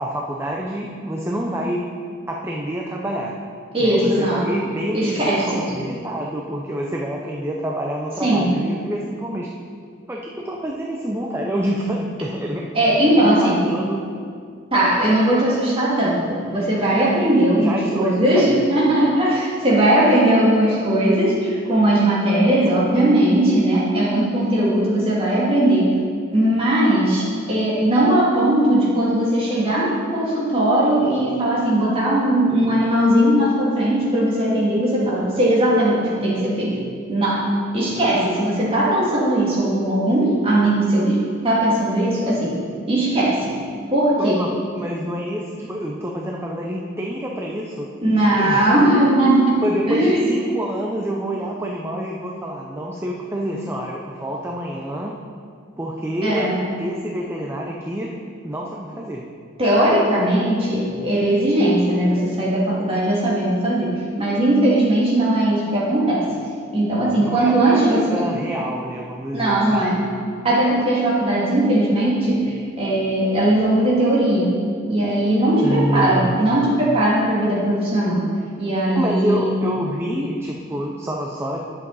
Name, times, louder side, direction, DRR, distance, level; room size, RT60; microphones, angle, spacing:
voice 1, 0.0-1.8 2.3-3.3 3.8-9.5 10.1-12.7 13.2-14.0 17.6-18.6 44.2-47.9 48.4-48.7 49.6-55.2 55.8-56.5 56.8-58.1 58.4-59.3 67.2-69.9 75.6-76.4 78.9-81.6, equal, 10° right, -1 dB, 0.6 m, -27 dB
voice 2, 3.7-4.5 4.9-5.6 8.2-8.5 12.7-13.6 14.7-25.9 26.3-36.8 37.1-42.6 42.9-43.6 43.9-44.4 48.0-50.3 56.2-56.6 59.6-63.9 64.2-66.3 66.7-68.2 69.3-74.6 74.9-78.3 78.6-79.6, right 1 dB, 30° right, -6 dB, 2.4 m, -19 dB
10.5 x 7.8 x 4.1 m, 2.2 s
head